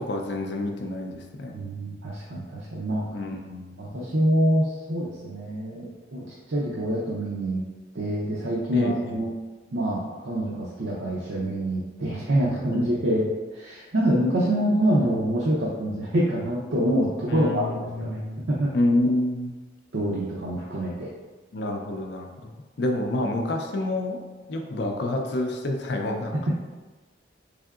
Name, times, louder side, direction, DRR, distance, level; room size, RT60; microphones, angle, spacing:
voice 1, 0.0-1.5 3.1-3.8 8.7-9.2 12.7-13.1 17.3-18.5 18.7-19.6 21.5-22.5 22.8-24.2 24.5-26.3, left 1 dB, 60° left, 3 dB, 0.4 m, -28 dB
voice 2, 1.5-3.0 3.8-7.6 7.9-9.3 9.7-17.7 18.0-18.2 18.5-18.7 19.9-21.1, right 1 dB, 70° right, -5 dB, 0.5 m, -26 dB
3.6 x 3.4 x 2.4 m, 1.2 s
head